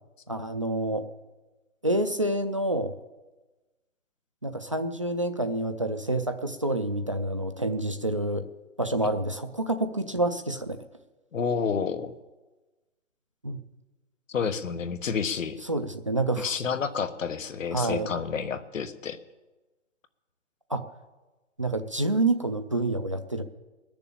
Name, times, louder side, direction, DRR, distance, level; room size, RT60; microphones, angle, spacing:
voice 1, 0.3-1.1 1.8-2.9 4.4-8.5 8.8-10.8 13.4-13.6 15.6-16.5 17.7-18.1 20.7-20.8 21.6-23.4, right 2 dB, 25° right, 8 dB, 0.4 m, -28 dB
voice 2, 11.3-12.1 14.3-15.6 16.4-19.2, left 6 dB, 85° left, 9 dB, 1.4 m, -29 dB
20.5 x 6.9 x 8.6 m, 1.2 s
hypercardioid pair, 170°, 38 cm